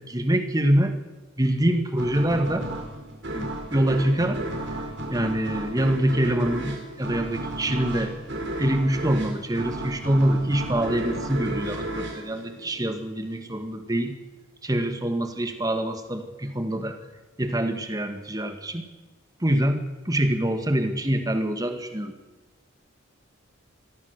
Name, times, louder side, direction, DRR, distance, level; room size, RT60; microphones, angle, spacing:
voice 1, 0.1-0.9 1.4-2.7 3.3-4.4 4.7-4.8 5.1-8.1 8.6-14.2 14.6-17.0 17.4-18.9 19.4-22.1, right 1 dB, 20° right, 7 dB, 2.0 m, -25 dB
sound 1, 2.0-13.2, right 1 dB, 60° right, 4.7 m, -33 dB
23.5 x 16.5 x 6.7 m, 1.2 s
head